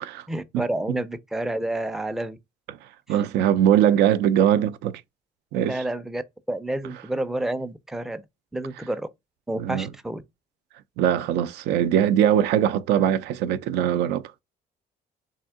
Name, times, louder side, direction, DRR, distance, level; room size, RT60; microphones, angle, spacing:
voice 1, 0.3-2.4 5.7-6.2 6.5-8.2 8.5-9.1 9.5-10.2, right 1 dB, ahead, 0.4 m, -29 dB
voice 2, 3.1-5.0 5.5-5.8 9.6-9.9 11.0-14.4, right 10 dB, 80° right, 0.4 m, -21 dB
3.5 x 2.7 x 3.5 m
cardioid pair, 110°, 17 cm